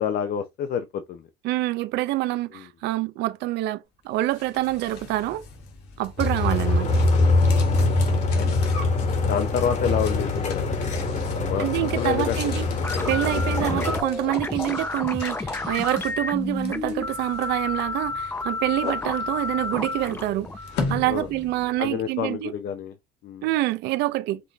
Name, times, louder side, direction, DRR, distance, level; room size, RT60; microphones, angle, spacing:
voice 1, 0.0-1.3 2.5-2.6 8.3-8.6 9.3-10.9 11.3-12.4 12.9-13.3 21.1-21.3 21.8-22.9 23.2-23.5, left 8 dB, 65° left, 0.7 m, -28 dB
voice 2, 1.4-5.4 6.0-7.0 11.6-12.7 13.1-20.5 20.9-22.5 23.4-24.4, right 16 dB, 85° right, 0.5 m, -26 dB
sound 1, 4.0-22.0, left 4 dB, 85° left, 1.7 m, -39 dB
sound 2, 6.2-14.0, left 2 dB, 45° left, 1.5 m, -23 dB
sound 3, 12.8-21.8, left 3 dB, 15° left, 0.5 m, -31 dB
5.3 x 2.7 x 3.1 m
cardioid pair, 110°, 17 cm